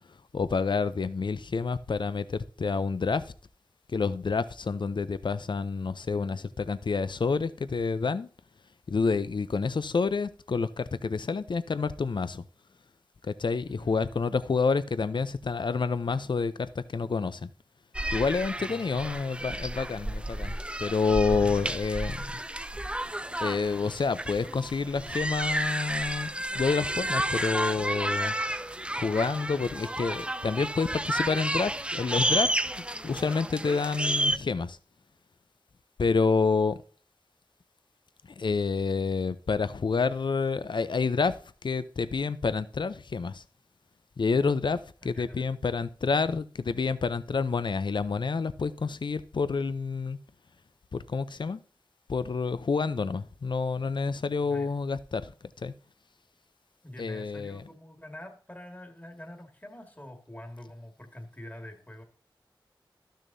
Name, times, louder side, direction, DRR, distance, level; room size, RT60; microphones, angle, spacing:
voice 1, 0.3-3.2 3.9-8.3 8.9-12.4 13.2-17.5 18.1-22.2 23.4-26.3 26.5-28.3 28.9-32.5 33.0-34.8 36.0-36.8 38.4-41.4 41.6-43.4 44.2-44.8 45.0-50.2 50.9-51.6 52.1-55.3 55.6-55.7 57.0-57.6, left 4 dB, 65° left, 14 dB, 0.5 m, -28 dB
voice 2, 13.6-14.2 18.6-19.1 21.3-21.8 45.0-45.8 54.4-54.7 56.8-62.0, left 1 dB, 20° left, 4 dB, 1.8 m, -45 dB
sound 1, 17.9-34.4, right 1 dB, 15° right, 0.5 m, -31 dB
12.0 x 6.4 x 2.7 m, 0.41 s
cardioid pair, 40°, 9 cm